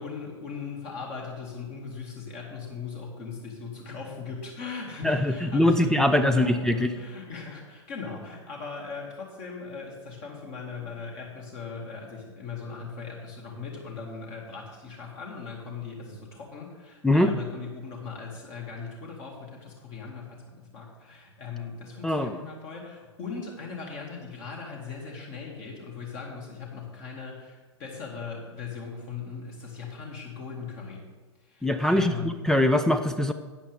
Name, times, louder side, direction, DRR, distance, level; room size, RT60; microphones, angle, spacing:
voice 1, 0.0-31.1 31.4-32.4, left 5 dB, 40° left, -1 dB, 2.2 m, -39 dB
voice 2, 5.0-6.9 17.0-17.3 22.0-22.4 31.6-33.3, left 1 dB, 5° left, 9 dB, 0.4 m, -22 dB
13.0 x 9.0 x 3.5 m, 1.3 s
figure-of-eight pair, 105°, 15 cm